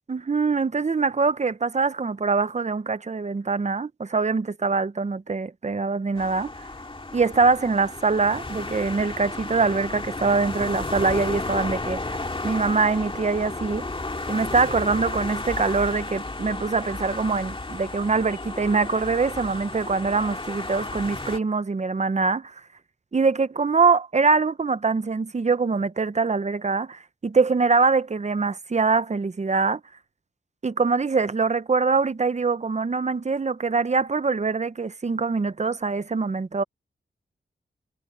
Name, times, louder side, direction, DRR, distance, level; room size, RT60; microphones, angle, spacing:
voice 1, 0.1-6.7 7.1-13.8 14.3-22.5 23.1-29.8 30.6-36.6, right 4 dB, 35° right, 0.7 m, -23 dB
sound 1, 6.2-21.4, left 2 dB, 25° left, 2.4 m, -33 dB
wide cardioid pair, 95°, 20 cm